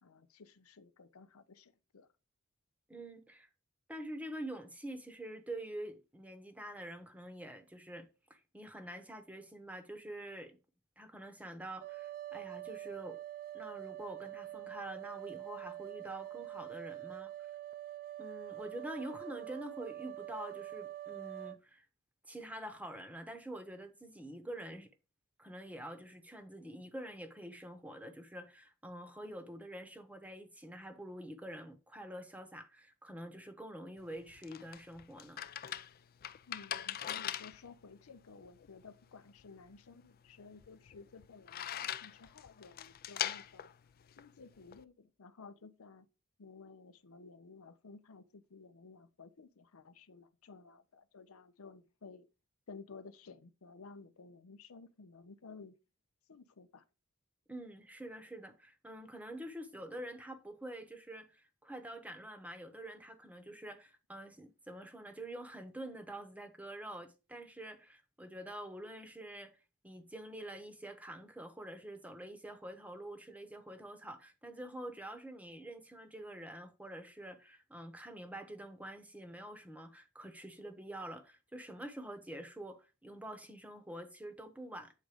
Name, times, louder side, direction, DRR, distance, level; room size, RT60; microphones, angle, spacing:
voice 1, 0.0-2.1 36.5-43.7 44.1-46.1 46.4-52.3 52.7-55.7 56.3-56.8, left 4 dB, 90° left, 0.7 m, -55 dB
voice 2, 2.9-3.5 3.9-10.6 11.0-13.2 13.5-17.3 18.2-21.9 22.3-24.9 25.4-35.4 57.5-69.5 69.8-84.9, right 1 dB, 5° right, 0.9 m, -46 dB
sound 1, 11.8-21.6, right 14 dB, 45° right, 0.5 m, -45 dB
sound 2, 34.0-44.8, left 10 dB, 45° left, 0.4 m, -43 dB
8.4 x 3.8 x 4.9 m
head